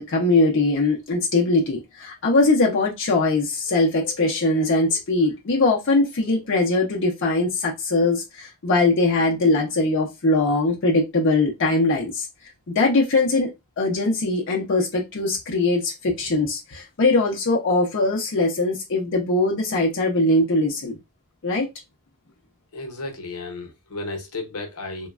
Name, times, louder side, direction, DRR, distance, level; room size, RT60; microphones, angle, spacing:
voice 1, 0.0-12.3 12.7-13.5 13.8-21.0 21.4-21.7, left 2 dB, 55° left, 0.6 m, -21 dB
voice 2, 22.7-25.1, left 2 dB, 85° left, 0.8 m, -33 dB
3.0 x 2.2 x 2.4 m
head